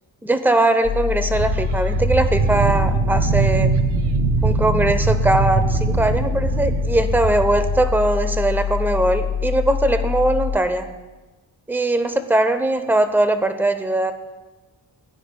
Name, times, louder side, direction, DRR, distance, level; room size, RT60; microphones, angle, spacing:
voice 1, 0.2-3.7 4.4-10.9 11.7-14.1, right 2 dB, 5° right, 9 dB, 0.7 m, -20 dB
sound 1, 0.8-10.6, left 8 dB, 55° left, 0.7 m, -25 dB
sound 2, 1.3-8.1 8.6-8.7, right 7 dB, 75° right, 0.7 m, -22 dB
17.0 x 9.7 x 2.3 m, 1.2 s
cardioid pair, 80°, 43 cm